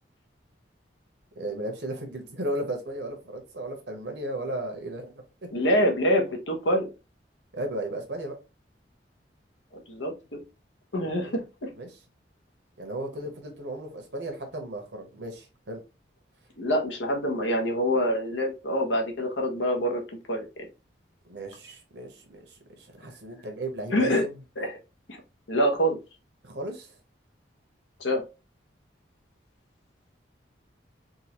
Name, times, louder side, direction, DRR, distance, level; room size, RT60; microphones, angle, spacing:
voice 1, 1.4-5.5 7.5-8.4 11.0-11.4 11.8-11.9 12.8-15.8 21.2-24.3 26.4-26.9, right 1 dB, 70° right, 1.0 m, -35 dB
voice 2, 5.5-6.9 9.7-10.4 10.9-11.7 16.6-20.0 20.3-20.5 23.9-24.2 24.6-24.8 25.1-25.2 25.5-26.0 28.0-28.2, equal, 85° left, 1.1 m, -25 dB
3.8 x 2.5 x 2.9 m
head